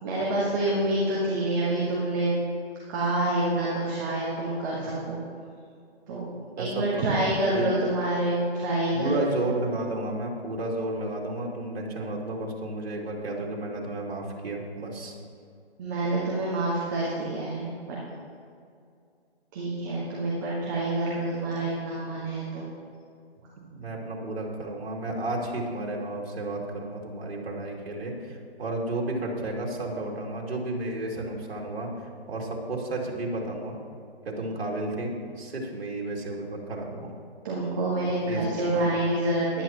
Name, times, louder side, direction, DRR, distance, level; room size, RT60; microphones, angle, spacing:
voice 1, 0.0-2.3 2.9-5.2 6.1-6.2 6.6-9.1 15.8-18.0 19.5-22.7 37.4-39.6, right 1 dB, 20° right, -6 dB, 1.3 m, -27 dB
voice 2, 6.6-7.7 8.9-15.2 23.6-31.9 32.3-33.8 34.3-37.1 38.3-39.0, right 2 dB, 65° right, -2 dB, 2.5 m, -32 dB
15.0 x 10.5 x 2.9 m, 2.4 s
hypercardioid pair, 160°, 32 cm